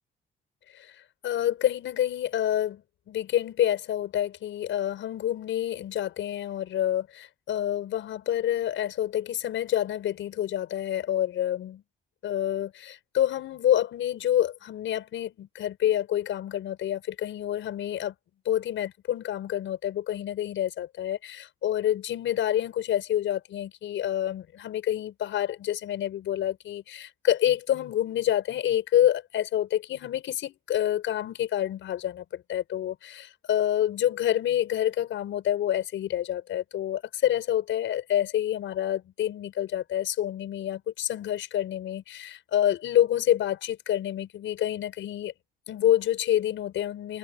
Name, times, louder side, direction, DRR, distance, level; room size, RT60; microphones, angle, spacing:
voice 1, 1.2-2.8 3.1-11.8 12.2-18.1 18.5-45.3 45.7-47.2, left 11 dB, 75° left, 5.5 m, -27 dB
cardioid pair, 90°, 20 cm